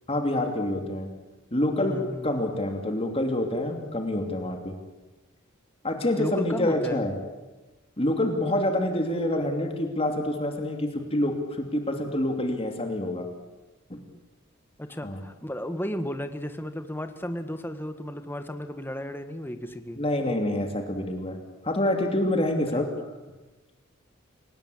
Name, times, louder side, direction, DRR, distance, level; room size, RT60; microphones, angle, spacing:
voice 1, 0.1-1.1 1.5-4.7 5.8-7.1 8.0-13.3 13.9-14.0 15.0-15.2 20.0-21.4 21.6-22.9, left 1 dB, 30° left, 4 dB, 2.8 m, -27 dB
voice 2, 1.8-2.6 6.2-7.0 14.8-20.0 22.7-22.9, equal, 10° left, 8 dB, 1.6 m, -34 dB
28.5 x 18.0 x 8.5 m, 1.2 s
head